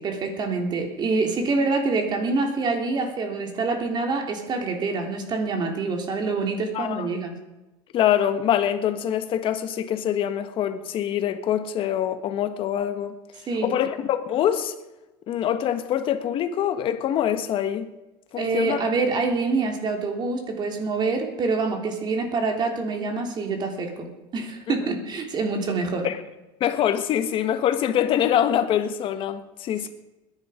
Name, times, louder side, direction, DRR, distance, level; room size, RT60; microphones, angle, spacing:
voice 1, 0.0-7.3 13.5-13.8 18.4-26.1, right 3 dB, 40° right, 3.5 m, -26 dB
voice 2, 6.7-7.1 7.9-13.2 13.6-14.7 15.3-17.9 18.3-18.8 26.0-26.2 26.6-29.9, left 10 dB, 50° left, 1.5 m, -24 dB
21.0 x 10.5 x 5.2 m
supercardioid pair, 110°, 11 cm